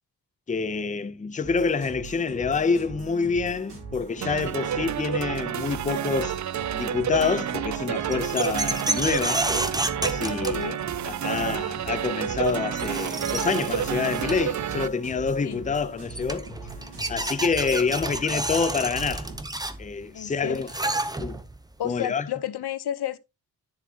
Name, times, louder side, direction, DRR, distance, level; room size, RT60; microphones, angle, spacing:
voice 1, 0.5-6.4 6.7-9.5 10.0-10.6 11.0-16.5 17.1-19.3 19.8-20.7 21.2-21.4 21.8-22.3, left 5 dB, 20° left, 0.6 m, -27 dB
sound 1, 1.4-19.4, right 3 dB, 80° right, 5.6 m, -41 dB
sound 2, 4.2-14.9, right 9 dB, 50° right, 0.5 m, -29 dB
sound 3, 7.9-11.0 12.3-12.4 12.7-14.6 15.7-15.8 16.1-21.6, right 2 dB, 10° right, 0.8 m, -30 dB
voice 2, 20.1-20.6 21.8-23.2, left 10 dB, 85° left, 0.9 m, -31 dB
11.0 x 7.0 x 2.8 m
wide cardioid pair, 130°, 38 cm